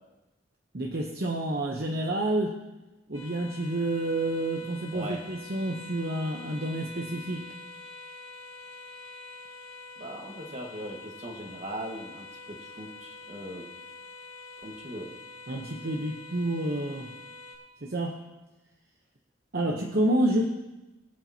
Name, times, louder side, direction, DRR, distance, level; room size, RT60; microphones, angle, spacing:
voice 1, 0.7-2.6 3.1-7.5 15.5-17.1 17.8-18.2 19.5-20.4, right 1 dB, 50° right, 1 dB, 0.9 m, -29 dB
sound 1, 3.1-17.6, left 3 dB, 25° left, 3.7 m, -46 dB
voice 2, 4.9-5.2 10.0-13.6 14.6-15.1 19.8-19.9, right 1 dB, 35° right, 1 dB, 1.7 m, -39 dB
21.0 x 8.8 x 2.9 m, 1.0 s
head